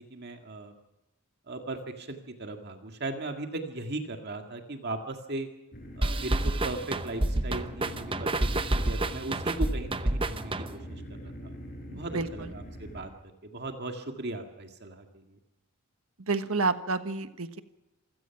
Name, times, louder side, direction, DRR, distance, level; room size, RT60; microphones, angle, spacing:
voice 1, 0.1-0.7 1.5-5.5 6.0-11.5 11.9-13.1 13.4-15.4, right 2 dB, 50° right, 4 dB, 2.0 m, -38 dB
sound 1, 5.7-13.1, equal, 45° left, 6.3 m, -43 dB
sound 2, 6.0-11.0, right 1 dB, 25° right, 0.8 m, -29 dB
voice 2, 12.1-12.5 16.3-17.6, right 3 dB, 70° right, 10 dB, 1.3 m, -29 dB
27.0 x 16.5 x 5.9 m, 0.97 s
head